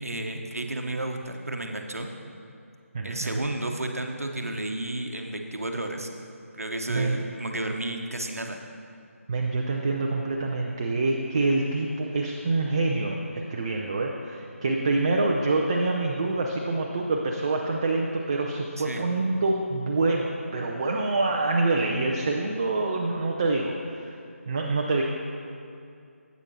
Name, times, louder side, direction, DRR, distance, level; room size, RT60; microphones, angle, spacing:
voice 1, 0.0-2.1 3.0-6.1 6.5-8.6 18.8-19.0, right 1 dB, 75° right, 4 dB, 0.9 m, -32 dB
voice 2, 2.9-3.4 6.9-7.2 9.3-24.1 24.5-25.0, right 3 dB, 25° right, 1 dB, 0.4 m, -26 dB
11.5 x 8.1 x 2.8 m, 2.5 s
figure-of-eight pair, 155°, 8 cm